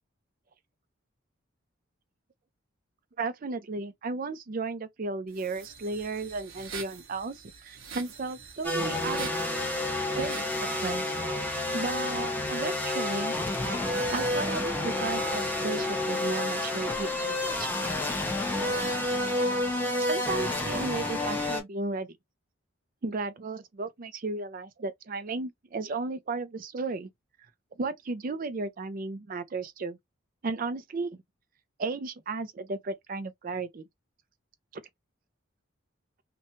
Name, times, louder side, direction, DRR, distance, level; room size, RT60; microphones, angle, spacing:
voice 1, 3.2-9.3 10.1-10.4 10.8-11.1 11.7-13.4 13.7-17.7 19.5-19.6 20.0-22.2 23.0-27.1 27.8-30.0 30.4-31.2 31.8-33.8 34.7-34.8, right 3 dB, 40° right, 0.4 m, -34 dB
sound 1, 5.3-10.6, right 6 dB, 75° right, 0.8 m, -45 dB
sound 2, 8.6-21.6, left 1 dB, 10° left, 0.6 m, -29 dB
2.8 x 2.2 x 2.6 m
head